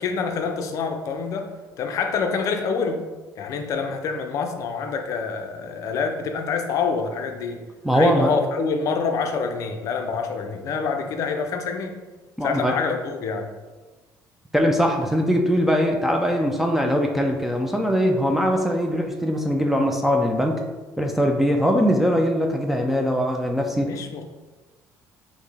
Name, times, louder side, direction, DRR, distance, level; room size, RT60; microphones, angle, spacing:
voice 1, 0.0-1.5 1.8-3.0 3.4-7.6 7.9-12.0 12.4-13.5 23.8-24.2, left 5 dB, 55° left, 5 dB, 0.5 m, -26 dB
voice 2, 7.8-8.3 12.4-12.8 14.5-20.6 21.0-23.9, equal, 5° right, 1 dB, 0.3 m, -21 dB
4.1 x 3.0 x 3.3 m, 1.2 s
cardioid pair, 150°, 7 cm